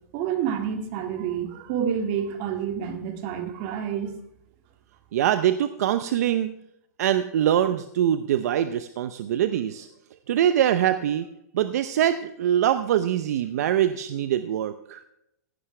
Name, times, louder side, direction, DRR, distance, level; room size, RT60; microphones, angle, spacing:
voice 1, 0.1-4.1, right 8 dB, 40° right, 5 dB, 2.0 m, -28 dB
voice 2, 5.1-6.6 7.0-9.9 10.3-11.3 11.5-15.0, right 10 dB, 65° right, 11 dB, 0.7 m, -23 dB
15.0 x 11.5 x 3.3 m, 0.81 s
hypercardioid pair, 150°, 9 cm